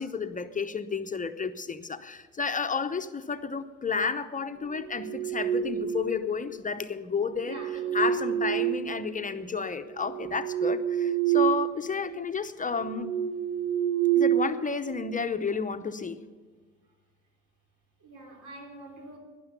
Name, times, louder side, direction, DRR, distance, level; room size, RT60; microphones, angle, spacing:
voice 1, 0.0-7.6 7.9-13.1 14.2-16.2, left 5 dB, 25° left, 9 dB, 0.8 m, -31 dB
sound 1, 4.8-6.3 7.3-9.4 9.8-11.7 12.0-12.2 12.7-15.1, right 10 dB, 35° right, 1.2 m, -28 dB
voice 2, 7.4-8.9 14.1-14.2 18.0-19.2, right 2 dB, 85° right, 3 dB, 3.3 m, -46 dB
12.0 x 10.5 x 8.2 m, 1.4 s
cardioid pair, 90°, 30 cm